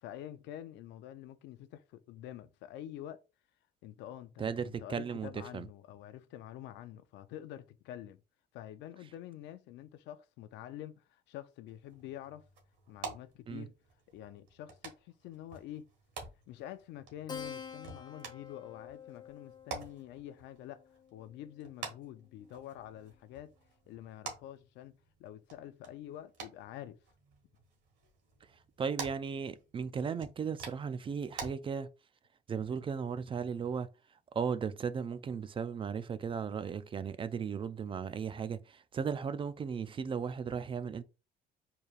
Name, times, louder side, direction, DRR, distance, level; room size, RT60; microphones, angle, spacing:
voice 1, 0.0-3.2 3.8-8.2 8.5-12.4 12.9-13.7 14.1-15.9 16.5-20.8 21.1-23.5 23.9-27.0, left 12 dB, 85° left, 0.5 m, -47 dB
voice 2, 4.4-5.7 13.5-13.7 28.8-31.9 32.5-33.9 34.3-41.0, right 6 dB, 30° right, 0.4 m, -36 dB
sound 1, 11.7-31.5, right 5 dB, 90° right, 1.5 m, -49 dB
Keyboard (musical), 17.3-22.3, left 7 dB, 25° left, 0.5 m, -48 dB
4.5 x 3.3 x 2.4 m
cardioid pair, 110°, 18 cm